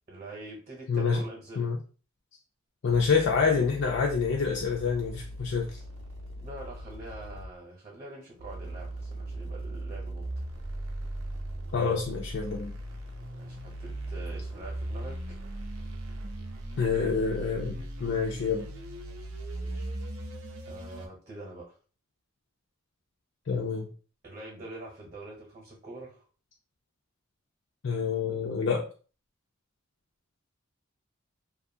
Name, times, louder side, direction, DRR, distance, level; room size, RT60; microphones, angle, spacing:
voice 1, 0.1-1.7 6.4-10.3 13.4-15.4 19.7-19.9 20.7-21.8 24.2-26.2, right 2 dB, 35° right, -1 dB, 0.8 m, -44 dB
voice 2, 0.9-1.2 1.6-1.8 2.8-5.8 11.7-12.7 16.8-18.7 23.5-23.9 27.8-28.9, left 5 dB, 60° left, -1 dB, 0.4 m, -27 dB
sound 1, 2.9-7.5 8.4-21.1, right 1 dB, 80° right, 0.6 m, -39 dB
2.6 x 2.4 x 2.7 m, 0.37 s
head